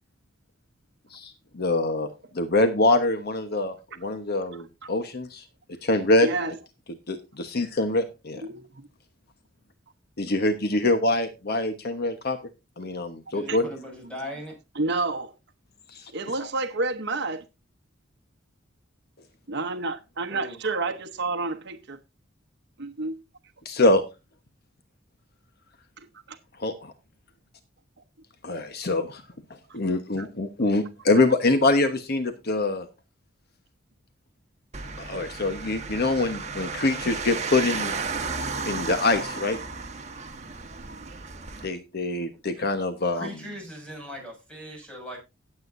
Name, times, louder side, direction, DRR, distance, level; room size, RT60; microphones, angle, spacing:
voice 1, 1.1-2.1 2.3-5.4 5.8-6.3 7.1-8.4 10.2-12.4 12.8-13.7 23.6-24.0 26.6-26.9 28.4-29.2 29.7-32.9 35.0-37.9 38.7-39.6 41.6-43.3, left 2 dB, 55° left, 1.1 m, -24 dB
voice 2, 4.5-4.9 6.2-6.5 8.4-8.6 13.5-13.6 14.8-15.3 16.1-17.4 19.5-22.0 22.8-23.2 26.0-26.4 29.7-29.8 30.1-30.3, right 3 dB, 60° right, 1.0 m, -30 dB
voice 3, 13.3-14.6 20.3-20.6 43.1-45.2, equal, 5° left, 6.3 m, -39 dB
sound 1, 34.7-41.7, right 4 dB, 35° right, 1.5 m, -34 dB
17.5 x 8.0 x 2.6 m
head